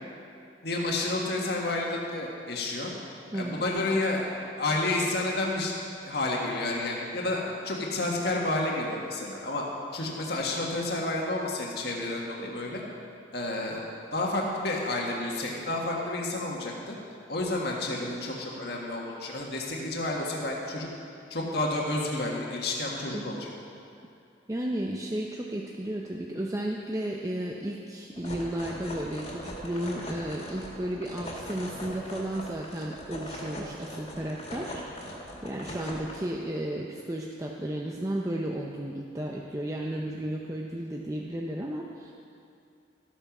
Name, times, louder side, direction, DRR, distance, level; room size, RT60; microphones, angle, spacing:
voice 1, 0.6-2.9 3.3-4.2 4.6-5.7 6.0-9.7 9.9-12.8 13.3-13.8 14.1-16.9 17.3-20.9 21.3-23.5, left 2 dB, 55° left, -2 dB, 1.7 m, -30 dB
voice 2, 3.3-3.6 23.1-23.4 24.5-42.1, right 1 dB, 15° right, -1 dB, 0.6 m, -33 dB
sound 1, 28.1-36.2, equal, 35° left, 2.2 m, -40 dB
13.5 x 9.0 x 6.0 m, 2.5 s
head